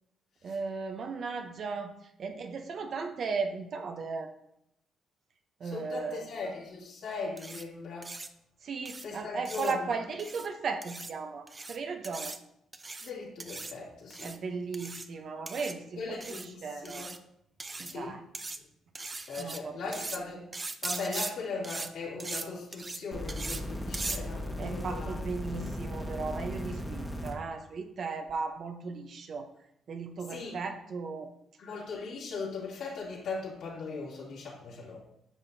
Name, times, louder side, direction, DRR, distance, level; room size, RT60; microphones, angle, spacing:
voice 1, 0.4-1.9 2.2-4.3 5.6-6.3 8.6-12.4 14.2-17.1 17.8-18.2 19.4-19.8 24.6-29.5 29.9-31.3, right 4 dB, 55° right, 6 dB, 0.8 m, -36 dB
voice 2, 5.6-8.1 9.0-9.8 13.0-14.4 15.3-15.4 16.0-17.1 17.8-18.1 19.3-20.4 20.8-25.2 25.5-25.6 30.3-30.6 31.6-35.0, left 4 dB, 80° left, -6 dB, 2.7 m, -39 dB
sound 1, 7.4-7.6 8.0-8.3 8.9-9.0 9.4-9.7 10.2-10.5 10.8-11.1 11.5-11.8 12.0-12.4 12.7-13.1 13.4-13.7 14.1-14.4 14.7-15.1 15.5-15.7 16.2-16.5 16.8-17.2 17.6-18.0 18.3-18.6 18.9-19.6 19.9-20.2 20.5-21.3 21.6-21.9 22.2-22.4 22.7-23.0 23.3-23.6 23.9-24.2, right 3 dB, 25° right, 0.5 m, -39 dB
sound 2, 23.1-27.3 28.3-28.4, equal, 5° left, 1.2 m, -37 dB
9.5 x 5.7 x 2.7 m, 0.77 s
cardioid pair, 90°, 0 cm